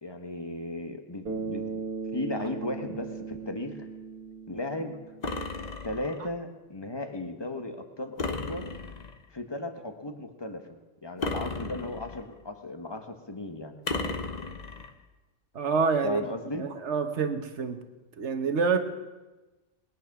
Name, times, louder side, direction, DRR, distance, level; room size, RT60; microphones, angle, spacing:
voice 1, 0.0-1.8 2.1-3.9 4.5-5.0 5.8-8.7 9.3-10.7 11.0-13.8 16.0-16.6 18.7-18.8, left 2 dB, 20° left, 5 dB, 1.2 m, -36 dB
Bass guitar, 1.3-5.6, right 5 dB, 80° right, 2.3 m, -37 dB
sound 1, 5.2-6.3 8.2-9.2 11.2-12.3 13.9-14.9, left 3 dB, 35° left, 0.9 m, -34 dB
voice 2, 15.5-16.2 16.6-17.8 18.2-18.8, right 5 dB, 55° right, 7 dB, 1.4 m, -27 dB
21.0 x 9.2 x 6.0 m, 1.2 s
omnidirectional pair, 1.5 m